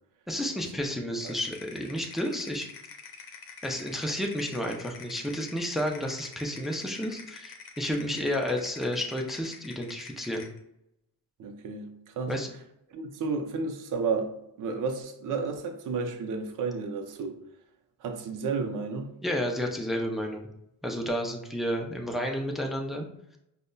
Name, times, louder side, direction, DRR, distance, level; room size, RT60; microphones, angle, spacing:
voice 1, 0.3-2.7 3.6-10.5 12.3-12.5 19.2-20.5 20.8-23.1, equal, ahead, 0.3 m, -31 dB
sound 1, 1.2-10.6, left 5 dB, 85° left, 0.7 m, -47 dB
voice 2, 11.4-12.3 12.9-14.3 14.6-17.4 18.0-19.1, right 4 dB, 60° right, 0.6 m, -32 dB
5.1 x 2.1 x 2.2 m
cardioid pair, 135°, 37 cm